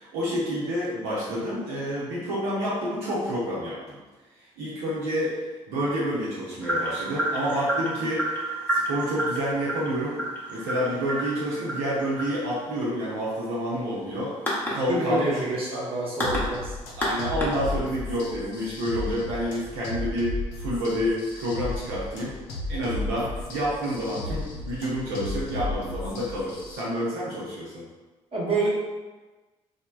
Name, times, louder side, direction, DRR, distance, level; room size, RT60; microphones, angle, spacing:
voice 1, 0.0-4.0 4.4-8.4 8.7-10.2 10.5-14.3 14.7-15.4 15.7-15.8 17.0-22.3 22.7-27.8, equal, 70° right, -8 dB, 0.6 m, -29 dB
sound 1, 6.6-18.1, right 1 dB, 10° left, 0.8 m, -31 dB
voice 2, 14.9-16.8 28.3-28.7, right 2 dB, 30° right, -5 dB, 1.0 m, -27 dB
sound 2, 16.2-26.8, left 2 dB, 70° left, 0.5 m, -34 dB
3.1 x 2.0 x 2.2 m, 1.2 s
figure-of-eight pair, 45°, 17 cm